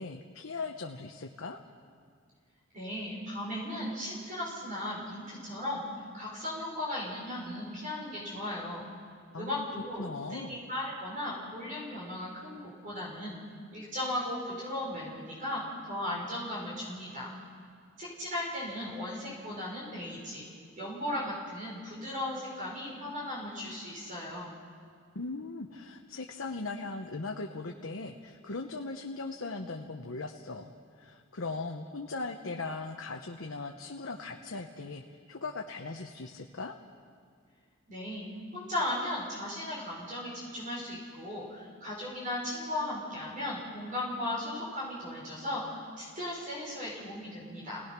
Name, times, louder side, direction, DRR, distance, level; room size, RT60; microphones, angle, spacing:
voice 1, 0.0-1.6 9.3-9.7 10.0-10.6 25.1-35.0 35.3-36.7, left 3 dB, 85° left, 2 dB, 1.1 m, -39 dB
voice 2, 2.7-5.8 6.1-8.9 9.4-13.4 13.7-17.3 18.0-20.5 20.8-24.5 37.9-38.2 38.5-47.8, left 1 dB, 40° right, -6 dB, 5.8 m, -36 dB
29.5 x 18.5 x 6.1 m, 2.2 s
head